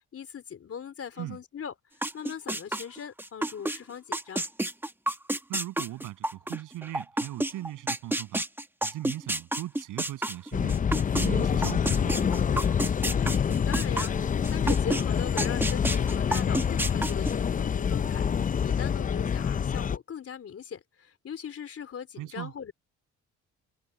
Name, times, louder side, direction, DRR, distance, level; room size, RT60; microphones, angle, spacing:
voice 1, 0.1-4.4 13.1-22.7, left 7 dB, 50° left, 3.7 m, -40 dB
sound 1, 2.0-3.8 4.1-11.3 11.6-15.0 15.4-17.3, right 1 dB, 5° right, 1.1 m, -29 dB
voice 2, 5.5-8.4 8.8-10.8 11.1-12.5 22.2-22.5, right 15 dB, 90° right, 7.5 m, -38 dB
sound 2, 10.5-20.0, left 7 dB, 25° left, 0.4 m, -26 dB
cardioid pair, 90°, 30 cm